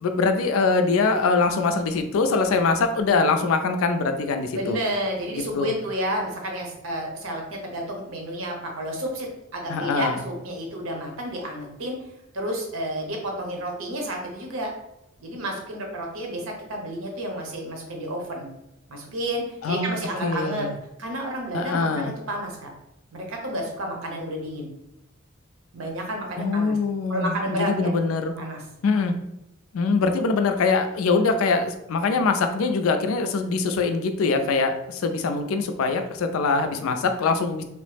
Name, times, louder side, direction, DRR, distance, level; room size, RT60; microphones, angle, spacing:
voice 1, 0.0-4.8 5.5-5.7 9.7-10.2 19.6-20.0 20.2-20.7 21.5-22.1 26.4-28.3 28.8-29.1 29.7-37.6, left 4 dB, 80° left, 7 dB, 0.4 m, -23 dB
voice 2, 4.6-12.0 12.3-14.7 15.2-18.5 18.9-20.7 21.0-22.7 23.1-24.7 25.7-26.8 27.1-27.9 28.4-28.6, right 1 dB, 80° right, 1 dB, 0.8 m, -31 dB
3.0 x 2.0 x 3.2 m, 0.88 s
head